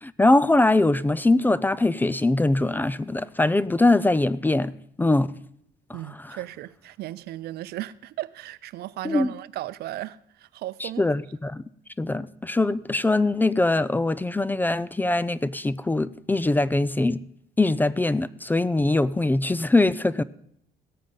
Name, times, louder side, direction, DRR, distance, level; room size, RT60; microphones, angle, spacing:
voice 1, 0.0-4.7 5.0-5.3 5.9-6.0 6.2-6.4 9.0-9.3 10.8-11.6 12.0-17.2 17.6-20.2, left 2 dB, 10° left, 0.4 m, -22 dB
voice 2, 5.9-11.1, right 15 dB, 70° right, 0.6 m, -35 dB
17.0 x 9.0 x 5.5 m
cardioid pair, 110°, 17 cm